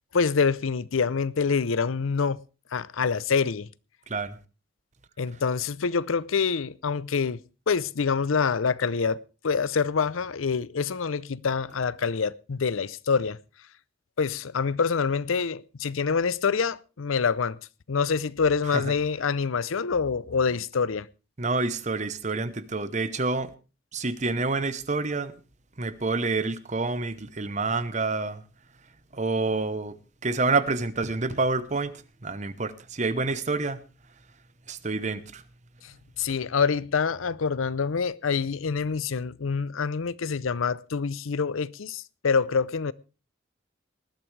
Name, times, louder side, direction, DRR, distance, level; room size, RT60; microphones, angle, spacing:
voice 1, 0.1-2.4 2.7-3.7 5.2-13.4 14.2-17.6 17.9-21.1 35.8-42.9, left 5 dB, 90° left, 0.6 m, -26 dB
voice 2, 21.4-23.5 23.9-25.3 25.8-28.4 29.1-29.9 30.2-31.9 32.2-33.8 34.7-35.4, right 3 dB, 35° right, 0.9 m, -28 dB
19.5 x 12.0 x 3.3 m
head